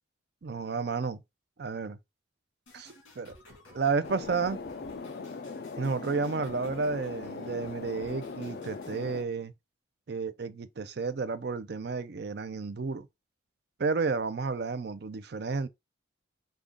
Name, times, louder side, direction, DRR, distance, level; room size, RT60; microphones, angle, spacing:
voice 1, 0.4-1.2 1.6-2.0 2.7-3.3 3.7-4.6 5.8-9.5 10.1-13.1 13.8-15.7, right 4 dB, 55° right, 0.5 m, -31 dB
sound 1, 2.7-9.0, left 1 dB, 75° left, 1.9 m, -54 dB
sound 2, 4.0-9.2, left 4 dB, 50° left, 0.4 m, -40 dB
5.1 x 2.4 x 3.6 m
head